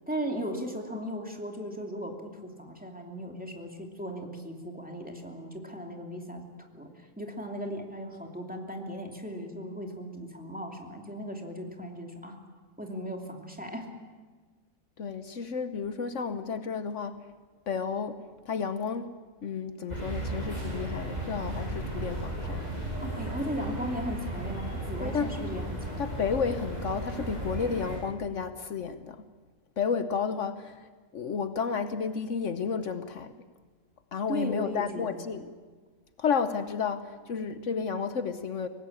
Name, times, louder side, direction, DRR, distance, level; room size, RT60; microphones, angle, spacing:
voice 1, 0.1-12.4 12.8-13.9 23.0-26.0 34.3-35.2, equal, 5° right, 1 dB, 2.7 m, -37 dB
voice 2, 15.0-17.3 17.7-19.1 19.4-22.7 25.0-25.3 26.0-29.2 29.8-33.3 34.1-35.5 36.2-38.7, left 6 dB, 65° left, 10 dB, 1.3 m, -32 dB
sound 1, 19.9-28.0, right 1 dB, 30° right, 7.4 m, -35 dB
24.5 x 19.0 x 8.7 m, 1.5 s
omnidirectional pair, 1.4 m